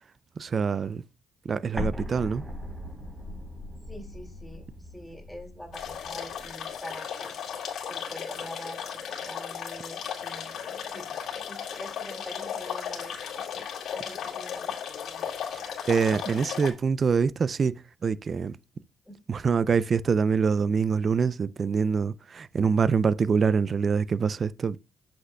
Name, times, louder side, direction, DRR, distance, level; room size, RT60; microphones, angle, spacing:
voice 1, 0.4-1.0 1.4-2.4 15.5-18.6 19.3-24.8, right 5 dB, 45° right, 0.4 m, -25 dB
Explosion, 1.7-6.5, left 1 dB, 15° right, 3.5 m, -38 dB
voice 2, 3.9-13.7 13.9-14.8 19.0-19.2 22.6-22.8, equal, 5° left, 2.7 m, -45 dB
sound 1, 5.7-16.7, left 8 dB, 70° left, 2.0 m, -36 dB
7.9 x 6.1 x 2.2 m
cardioid pair, 90°, 0 cm